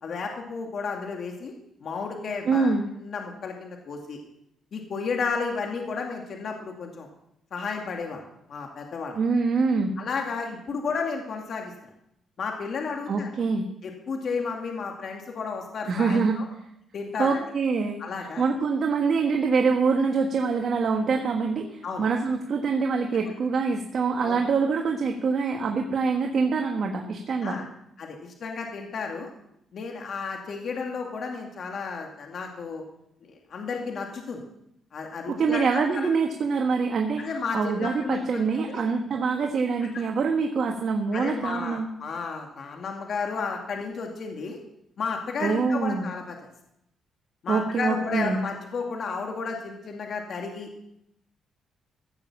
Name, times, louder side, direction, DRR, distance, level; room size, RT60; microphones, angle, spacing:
voice 1, 0.0-1.5 1.8-2.7 3.0-4.2 4.7-7.1 7.5-8.2 8.5-9.2 10.0-11.7 12.4-13.3 13.8-16.5 16.9-17.4 18.0-18.4 21.8-22.0 24.2-24.4 27.4-27.6 28.0-29.3 29.7-32.8 33.2-34.4 34.9-35.8 37.2-38.8 39.9-40.0 41.1-44.6 45.0-46.4 47.4-50.7, left 5 dB, 55° left, 2 dB, 2.3 m, -32 dB
voice 2, 2.4-2.9 9.1-9.9 13.1-13.7 15.9-16.4 17.2-18.0 18.4-27.6 35.3-37.2 37.5-41.9 45.4-46.1 47.5-48.4, right 4 dB, 55° right, 3 dB, 1.5 m, -25 dB
16.0 x 7.2 x 7.2 m, 0.79 s
cardioid pair, 90°, 0 cm